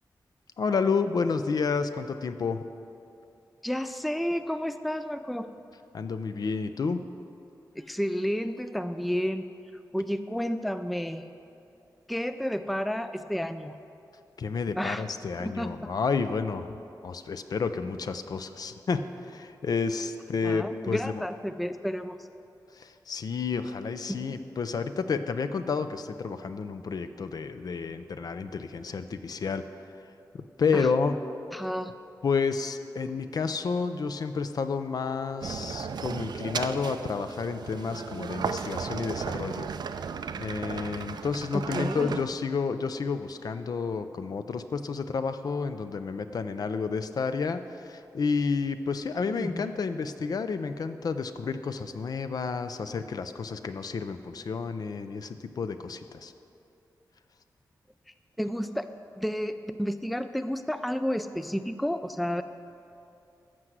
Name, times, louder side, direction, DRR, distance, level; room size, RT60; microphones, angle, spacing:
voice 1, 0.6-2.6 5.9-7.0 14.4-16.7 17.0-21.2 22.7-29.6 30.3-31.2 32.2-39.7 40.4-56.3, left 5 dB, 60° left, 10 dB, 0.6 m, -30 dB
voice 2, 3.6-5.5 7.8-9.4 9.9-11.2 12.1-13.7 14.8-15.0 15.4-15.7 20.4-22.2 24.1-24.4 30.7-30.9 31.5-31.9 41.5-42.1 49.4-49.7 58.4-58.9 59.2-62.4, equal, ahead, 10 dB, 0.3 m, -31 dB
sound 1, 35.4-42.3, right 6 dB, 75° right, 0.5 m, -35 dB
13.5 x 6.1 x 8.0 m, 2.6 s
wide cardioid pair, 150°, 7 cm